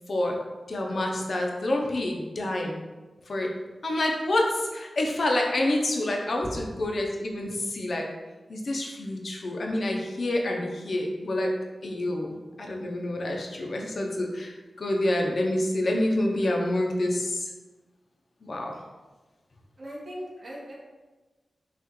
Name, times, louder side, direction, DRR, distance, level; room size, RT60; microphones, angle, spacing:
voice 1, 0.7-2.8 3.3-3.5 3.8-8.1 8.5-11.5 11.8-17.5 18.4-18.7, left 1 dB, 60° left, 1 dB, 0.6 m, -27 dB
voice 2, 19.8-20.7, equal, 55° right, -6 dB, 1.4 m, -38 dB
5.7 x 2.5 x 3.0 m, 1.2 s
wide cardioid pair, 95°, 0 cm